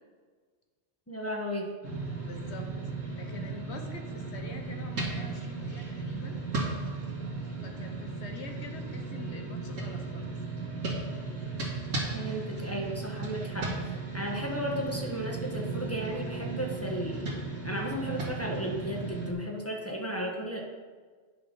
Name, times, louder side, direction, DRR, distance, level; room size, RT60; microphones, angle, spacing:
voice 1, 1.1-1.7 12.1-17.3 17.6-20.6, equal, 10° left, -1 dB, 1.3 m, -34 dB
sound 1, 1.8-19.3, right 3 dB, 85° right, 2.2 m, -36 dB
voice 2, 2.2-2.7 3.1-6.4 7.6-10.3, left 3 dB, 65° left, 4 dB, 1.3 m, -45 dB
9.4 x 6.1 x 5.4 m, 1.5 s
omnidirectional pair, 1.3 m